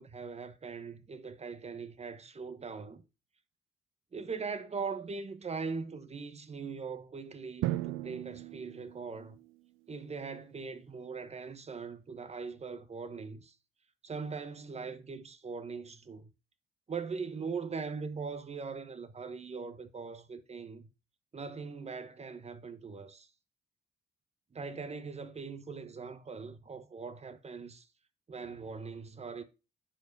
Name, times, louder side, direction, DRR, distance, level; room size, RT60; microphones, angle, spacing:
voice 1, 0.0-3.0 4.1-9.4 9.9-13.5 14.0-16.3 16.9-20.9 21.3-23.3 24.5-27.9 28.3-29.4, right 5 dB, 35° right, 1.2 m, -41 dB
Drum, 7.6-9.6, right 16 dB, 90° right, 0.5 m, -37 dB
10.0 x 5.0 x 4.1 m
cardioid pair, 90°, 20 cm